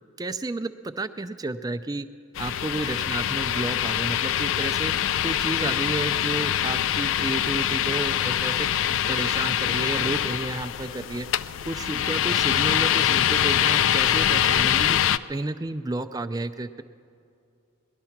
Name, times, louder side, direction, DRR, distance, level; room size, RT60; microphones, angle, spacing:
voice 1, 0.2-2.1 2.4-4.9 5.2-11.3 11.7-15.0 15.3-16.8, right 2 dB, 15° right, 11 dB, 0.4 m, -31 dB
sound 1, 2.4-15.2, left 10 dB, 60° left, 0.3 m, -24 dB
19.0 x 12.0 x 5.8 m, 2.5 s
head